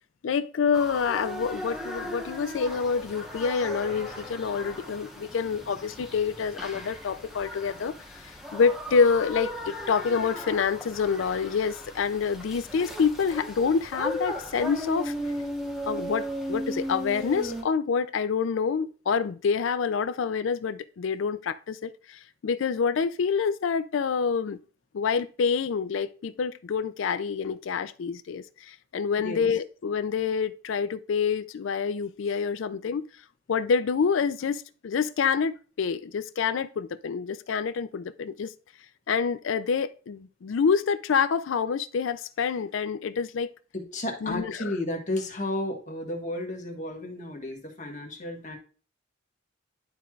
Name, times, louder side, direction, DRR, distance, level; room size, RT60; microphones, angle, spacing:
voice 1, 0.2-15.1 15.9-24.6 24.9-33.0 33.5-38.5 39.1-43.5 44.2-44.7, left 6 dB, 65° left, 0.4 m, -27 dB
sound 1, 0.7-17.6, equal, ahead, 1.1 m, -37 dB
voice 2, 43.7-48.6, left 1 dB, 35° left, 1.5 m, -33 dB
11.5 x 4.5 x 2.4 m
head